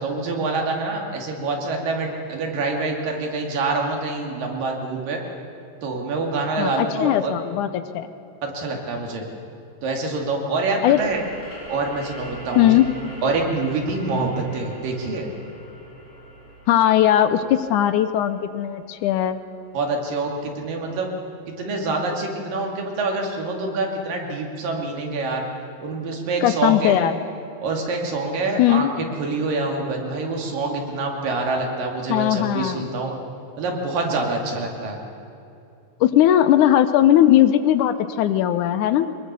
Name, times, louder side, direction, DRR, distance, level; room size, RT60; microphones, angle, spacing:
voice 1, 0.0-5.2 5.8-7.4 8.4-9.2 9.8-11.2 11.7-12.7 13.2-15.3 19.7-21.1 21.6-25.4 25.8-27.0 27.6-33.1 33.6-35.0, right 3 dB, 85° right, 1 dB, 4.2 m, -26 dB
voice 2, 6.6-8.1 10.8-11.0 12.6-12.9 16.7-19.4 26.4-27.1 28.6-28.9 32.1-32.9 36.0-39.1, left 11 dB, 75° left, 11 dB, 2.1 m, -18 dB
sound 1, 10.9-20.2, equal, 55° left, 5.2 m, -42 dB
23.5 x 20.5 x 6.9 m, 2.7 s
omnidirectional pair, 3.8 m